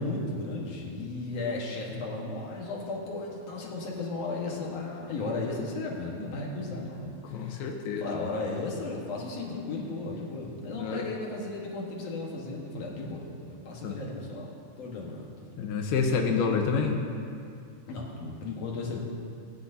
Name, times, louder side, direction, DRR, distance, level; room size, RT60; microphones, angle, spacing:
voice 1, 0.0-7.7 8.0-15.3 17.9-19.0, left 3 dB, 55° left, -3 dB, 2.0 m, -35 dB
voice 2, 7.3-8.3 10.8-11.1 13.8-14.0 15.6-17.0, left 5 dB, 85° left, 3 dB, 2.9 m, -28 dB
17.5 x 10.0 x 2.7 m, 2.4 s
omnidirectional pair, 4.3 m